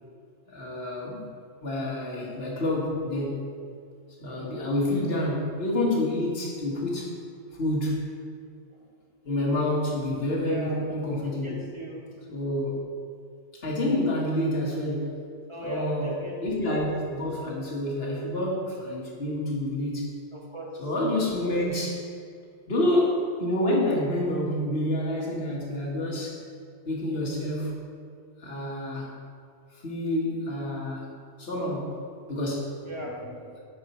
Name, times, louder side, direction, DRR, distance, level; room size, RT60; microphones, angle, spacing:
voice 1, 0.5-1.2 1.6-3.5 4.2-7.1 7.5-8.1 9.2-11.6 12.3-12.8 13.6-15.2 15.6-16.1 16.4-20.3 20.8-22.1 22.7-26.4 26.8-27.8 28.4-29.1 29.8-31.1 31.4-32.0 32.3-32.8, left 1 dB, 60° left, -3 dB, 1.7 m, -28 dB
voice 2, 10.4-10.8 11.4-12.0 15.5-16.5 20.3-20.7 32.8-33.6, equal, 25° right, -3 dB, 1.4 m, -37 dB
9.5 x 4.8 x 4.3 m, 2.3 s
omnidirectional pair, 1.2 m